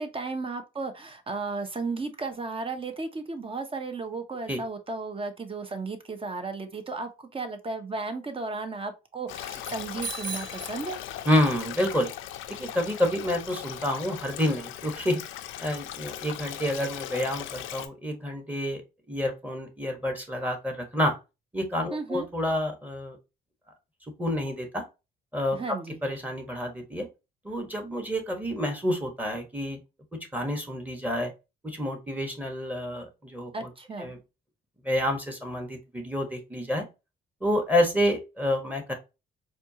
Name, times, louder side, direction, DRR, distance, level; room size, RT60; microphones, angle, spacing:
voice 1, 0.0-11.0 21.9-22.3 25.5-26.0 33.5-34.1, right 3 dB, 25° right, 0.7 m, -34 dB
Stream, 9.3-17.9, left 12 dB, 85° left, 0.5 m, -39 dB
Bicycle bell, 10.0-11.6, right 4 dB, 65° right, 1.3 m, -38 dB
voice 2, 11.3-12.1 12.5-15.2 15.6-18.8 19.1-21.1 21.5-23.2 24.2-24.8 25.3-25.6 26.0-27.1 27.4-29.8 30.3-31.3 31.6-33.7 34.0-34.2 34.8-36.8 37.4-38.9, left 1 dB, 10° right, 1.1 m, -28 dB
4.2 x 2.4 x 2.7 m
cardioid pair, 90°, 20 cm